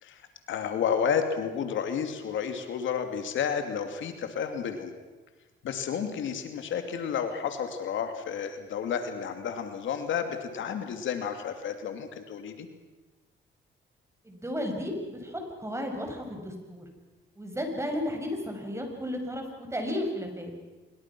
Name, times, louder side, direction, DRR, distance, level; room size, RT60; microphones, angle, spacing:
voice 1, 0.0-4.9 5.6-12.7, left 7 dB, 75° left, 7 dB, 2.7 m, -31 dB
voice 2, 14.2-16.8 17.4-20.5, left 1 dB, 15° right, 3 dB, 6.5 m, -33 dB
26.0 x 23.0 x 6.2 m, 1.2 s
cardioid pair, 90°, 20 cm